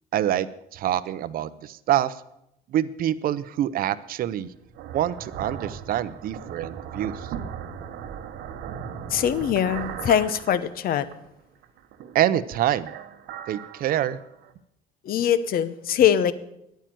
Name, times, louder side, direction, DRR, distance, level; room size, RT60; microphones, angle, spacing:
voice 1, 0.1-2.2 2.7-4.5 4.9-7.3 12.1-12.9 13.5-14.2, right 12 dB, 60° right, 15 dB, 0.6 m, -26 dB
sound 1, 4.4-11.3 11.6-12.4 12.8-14.5, right 8 dB, 85° right, 1.0 m, -38 dB
voice 2, 9.1-11.1 15.0-16.3, left 9 dB, 60° left, 15 dB, 0.8 m, -22 dB
10.5 x 9.2 x 7.5 m, 0.82 s
cardioid pair, 110°, 17 cm